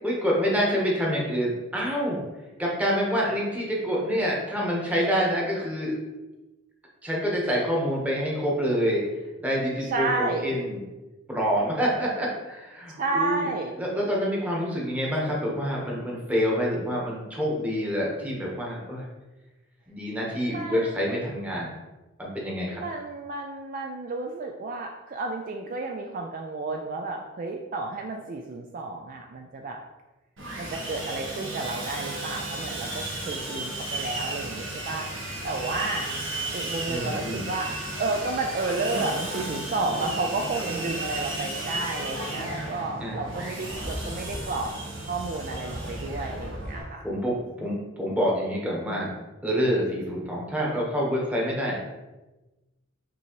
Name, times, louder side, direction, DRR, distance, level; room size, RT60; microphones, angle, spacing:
voice 1, 0.0-2.2 2.6-5.9 7.0-9.0 9.4-10.8 11.3-13.5 13.8-19.1 19.9-21.7 22.2-22.8 36.9-37.4 40.8-40.9 43.0-43.3 47.0-49.1 49.4-51.9, equal, 5° right, -4 dB, 1.1 m, -27 dB
voice 2, 9.8-10.6 13.0-13.7 20.5-21.1 22.7-29.8 30.6-36.1 36.5-37.7 38.0-44.7 45.0-47.4, right 3 dB, 45° right, 2 dB, 0.3 m, -31 dB
Sawing, 30.4-46.8, right 2 dB, 80° right, 1.2 m, -34 dB
6.0 x 2.8 x 3.0 m, 1.1 s
head